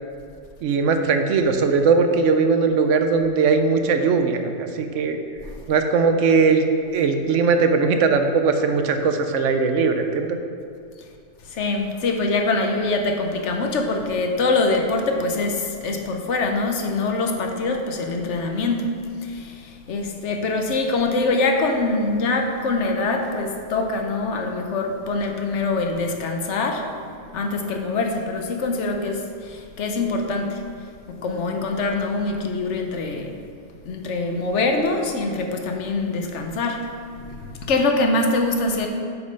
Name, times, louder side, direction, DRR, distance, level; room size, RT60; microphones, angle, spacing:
voice 1, 0.6-5.2 5.7-6.6 6.9-10.4, right 4 dB, 90° right, 6 dB, 1.0 m, -19 dB
voice 2, 11.5-18.9 19.2-26.9 27.3-30.6 31.1-33.4 33.9-36.8 37.2-38.9, left 3 dB, 75° left, 3 dB, 1.1 m, -24 dB
7.7 x 5.4 x 5.2 m, 2.5 s
omnidirectional pair, 1.2 m